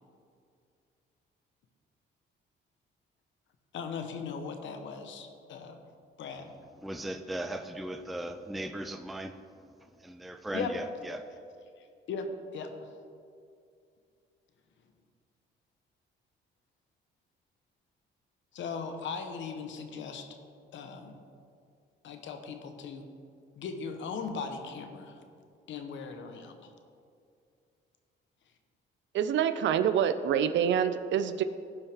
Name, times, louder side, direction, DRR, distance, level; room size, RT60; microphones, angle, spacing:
voice 1, 3.7-5.8 6.2-6.5 10.5-10.7 12.1-12.3 12.5-12.9 18.5-20.4 20.7-21.1 22.0-23.1 23.6-25.2 25.7-26.7, left 5 dB, 70° left, 6 dB, 1.0 m, -38 dB
voice 2, 6.8-9.3 10.0-11.3, right 1 dB, ahead, 7 dB, 0.4 m, -37 dB
voice 3, 29.1-31.4, right 8 dB, 70° right, 11 dB, 0.4 m, -26 dB
15.5 x 5.5 x 3.5 m, 2.4 s
cardioid pair, 90°, 20 cm